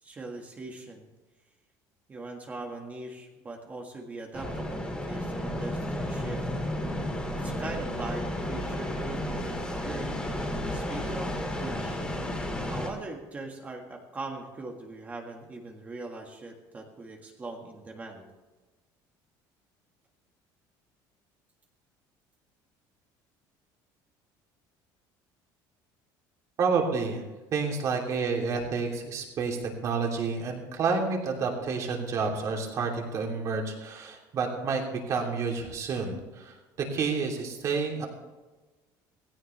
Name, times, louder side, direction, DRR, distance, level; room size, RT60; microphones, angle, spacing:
voice 1, 0.0-1.1 2.1-6.4 7.3-10.1 10.7-12.1 12.7-18.3, right 2 dB, 20° right, 2 dB, 1.7 m, -41 dB
sound 1, 4.3-12.9, left 1 dB, 10° left, 2.5 m, -32 dB
voice 2, 26.6-27.2 27.5-36.5 36.9-38.1, right 4 dB, 40° right, 0 dB, 3.1 m, -29 dB
18.0 x 16.5 x 3.4 m, 1.2 s
cardioid pair, 170°, 9 cm